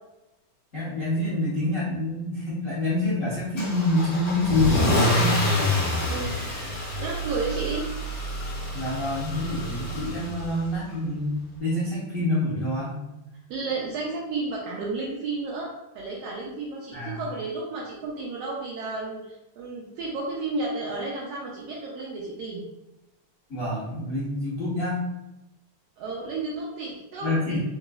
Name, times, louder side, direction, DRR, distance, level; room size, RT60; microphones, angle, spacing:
voice 1, 0.7-5.6 8.7-13.0 16.9-17.2 23.5-25.0 27.2-27.6, left 2 dB, 80° left, -9 dB, 0.7 m, -27 dB
Car / Engine starting / Accelerating revving vroom, 3.6-10.7, left 1 dB, 40° left, 1.7 m, -27 dB
voice 2, 6.1-6.4 7.0-7.9 13.5-22.6 26.0-27.4, right 3 dB, 80° right, -3 dB, 1.5 m, -32 dB
3.9 x 3.9 x 2.3 m, 0.96 s
omnidirectional pair, 3.5 m